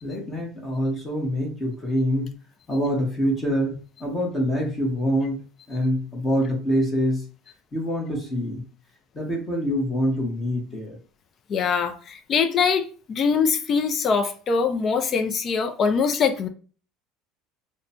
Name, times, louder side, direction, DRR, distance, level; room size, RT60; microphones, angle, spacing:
voice 1, 0.0-2.3 2.7-5.4 5.7-7.2 7.7-8.7 9.1-11.0, equal, 15° left, 1.2 m, -25 dB
voice 2, 11.5-16.5, left 5 dB, 35° left, 0.5 m, -23 dB
3.2 x 2.1 x 4.1 m
cardioid pair, 150°, 0 cm